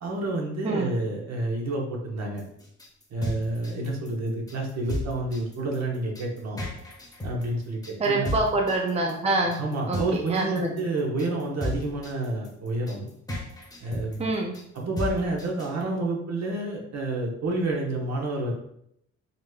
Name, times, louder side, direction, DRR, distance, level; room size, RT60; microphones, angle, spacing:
voice 1, 0.0-2.4 3.1-6.6 7.2-8.4 9.6-13.1 13.8-14.3 14.7-18.5, right 2 dB, 60° right, -1 dB, 1.2 m, -29 dB
sound 1, 2.4-15.8, left 1 dB, 10° left, 1.3 m, -35 dB
voice 2, 8.0-9.6 9.9-10.0 10.3-10.8 14.2-14.6, right 2 dB, 20° right, 1 dB, 0.6 m, -25 dB
5.6 x 3.0 x 2.4 m, 0.72 s
cardioid pair, 90°, 30 cm